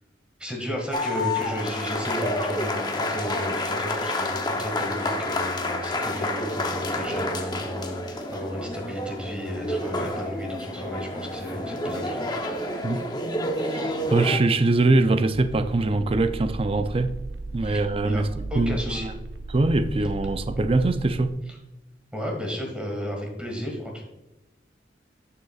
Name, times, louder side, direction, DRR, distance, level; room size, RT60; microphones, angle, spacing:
voice 1, 0.4-12.3 17.6-18.2 18.5-19.1 22.1-24.0, equal, 5° right, 1.7 m, -33 dB
sound 1, 0.9-14.4, left 1 dB, 25° left, 0.8 m, -29 dB
voice 2, 13.6-17.1 17.5-19.1 19.5-21.3, right 2 dB, 30° right, 0.5 m, -23 dB
sound 2, 15.3-21.3, right 2 dB, 80° right, 0.7 m, -36 dB
11.5 x 6.8 x 2.4 m
head